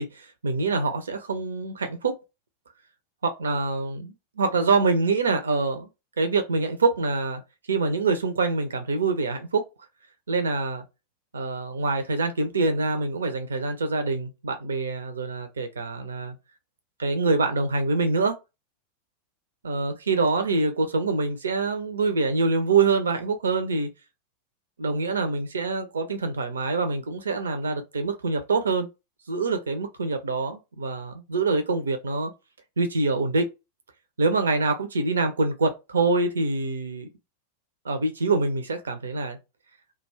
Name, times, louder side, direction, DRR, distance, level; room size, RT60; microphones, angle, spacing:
voice 1, 0.0-2.2 3.2-5.9 6.2-7.4 7.7-9.6 10.3-10.8 11.3-16.4 17.0-18.4 19.6-23.9 24.8-28.9 29.3-32.3 32.8-33.5 34.2-37.1 37.8-39.4, right 3 dB, 70° right, 0.5 m, -25 dB
2.3 x 2.3 x 3.1 m
figure-of-eight pair, 90°, 0 cm